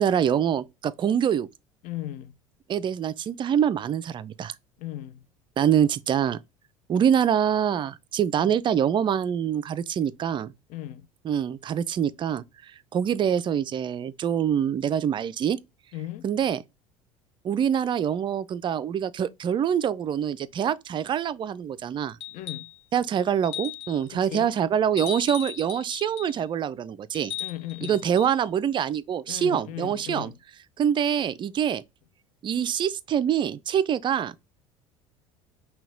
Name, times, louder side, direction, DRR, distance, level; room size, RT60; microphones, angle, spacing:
voice 1, 0.0-1.5 2.7-4.5 5.6-6.4 6.9-10.5 11.2-12.4 12.9-15.6 16.2-16.6 17.4-22.2 22.9-27.3 27.8-30.3 30.8-31.8 32.4-34.3, right 9 dB, 30° right, 0.4 m, -25 dB
voice 2, 1.8-2.3 4.8-5.2 8.4-8.5 10.7-11.1 15.9-16.3 22.3-22.7 24.1-24.6 27.4-28.1 29.3-30.4, left 13 dB, 50° left, 0.4 m, -37 dB
sound 1, 22.2-22.8 23.4-24.0 25.0-26.4 27.1-28.3 30.0-30.1, left 9 dB, 70° left, 0.8 m, -37 dB
5.7 x 2.2 x 3.7 m
figure-of-eight pair, 65°, 17 cm